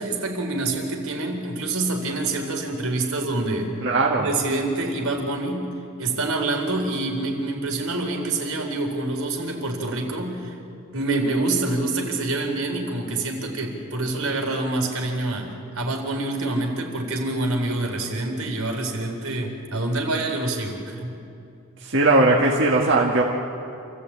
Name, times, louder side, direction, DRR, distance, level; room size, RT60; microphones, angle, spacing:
voice 1, 0.0-3.7 4.2-5.7 6.0-10.5 10.9-21.1, right 2 dB, 85° right, 2 dB, 4.2 m, -26 dB
voice 2, 3.8-4.3 21.8-23.2, right 2 dB, 55° right, -2 dB, 1.8 m, -19 dB
28.0 x 15.0 x 8.8 m, 2.6 s
head